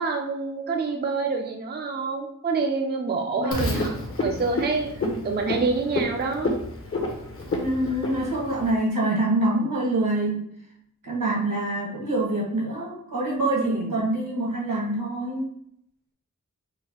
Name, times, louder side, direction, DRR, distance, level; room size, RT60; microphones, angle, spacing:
voice 1, 0.0-6.5, right 4 dB, 30° right, 2 dB, 0.4 m, -27 dB
voice 2, 3.3-3.8 7.6-10.4 11.0-15.5, right 1 dB, 80° right, -4 dB, 1.5 m, -25 dB
Frog, 3.5-8.7, left 2 dB, 40° left, 0.8 m, -30 dB
4.7 x 2.2 x 3.0 m, 0.71 s
wide cardioid pair, 90°, 33 cm